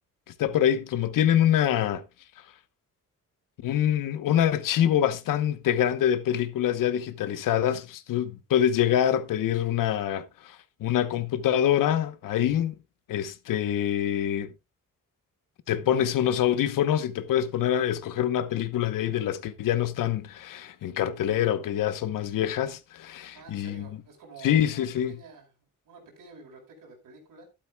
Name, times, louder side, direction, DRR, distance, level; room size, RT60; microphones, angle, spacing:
voice 1, 0.4-2.0 3.6-12.7 13.1-14.5 15.7-23.8 24.4-25.1, left 10 dB, 90° left, 1.0 m, -25 dB
voice 2, 23.3-25.5 25.8-27.5, right 3 dB, 90° right, 5.1 m, -49 dB
12.0 x 12.0 x 2.3 m
wide cardioid pair, 155°, 32 cm